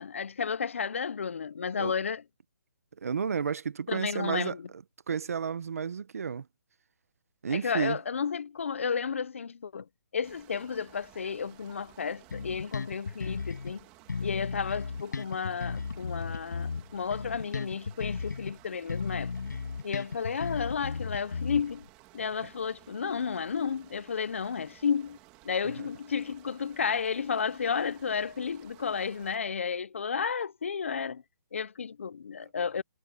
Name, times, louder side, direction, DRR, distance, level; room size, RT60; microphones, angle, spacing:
voice 1, 0.0-2.2 3.9-4.6 7.5-9.9 10.1-13.8 14.2-19.3 19.8-21.9 22.1-25.2 25.4-31.2 31.5-32.8, left 6 dB, 45° left, 0.5 m, -32 dB
voice 2, 3.0-6.5 7.4-8.0 22.4-22.5 25.8-25.9, right 6 dB, 50° right, 0.9 m, -32 dB
sound 1, 10.2-29.4, right 18 dB, 10° right, 1.8 m, -56 dB
Bass guitar, 12.3-13.8 14.1-18.6 18.9-21.9, left 5 dB, 75° left, 7.0 m, -35 dB
hypercardioid pair, 180°, 10 cm